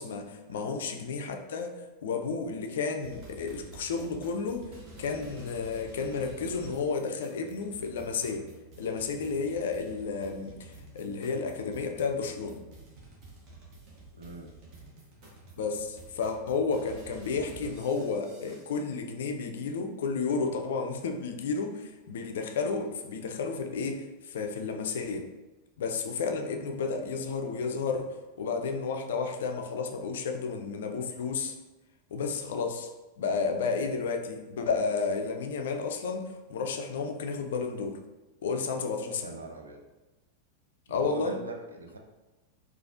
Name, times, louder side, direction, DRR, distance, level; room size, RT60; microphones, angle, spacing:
voice 1, 0.0-1.7 2.0-4.7 5.0-8.5 8.8-12.6 15.6-25.3 25.8-31.5 32.1-32.9 33.2-38.0 38.4-39.3 40.9-41.3, left 4 dB, 60° left, 5 dB, 0.4 m, -32 dB
sound 1, 3.0-18.9, right 2 dB, 40° right, 1.0 m, -50 dB
voice 2, 14.1-14.5 39.2-39.8 40.9-42.0, right 3 dB, 75° right, 3 dB, 0.5 m, -41 dB
4.0 x 2.4 x 2.4 m, 1.1 s
figure-of-eight pair, 90°, 0 cm